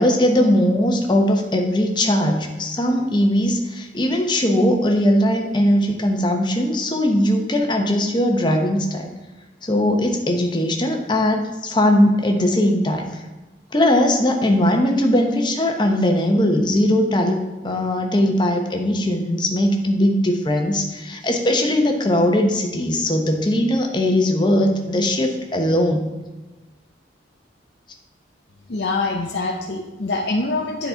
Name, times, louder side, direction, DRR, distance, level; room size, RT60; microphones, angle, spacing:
voice 1, 0.0-9.1 9.6-13.2 13.7-26.1, left 1 dB, 25° left, 3 dB, 0.9 m, -19 dB
voice 2, 28.7-30.9, left 3 dB, 60° left, -1 dB, 0.7 m, -24 dB
9.8 x 4.2 x 4.5 m, 1.1 s
head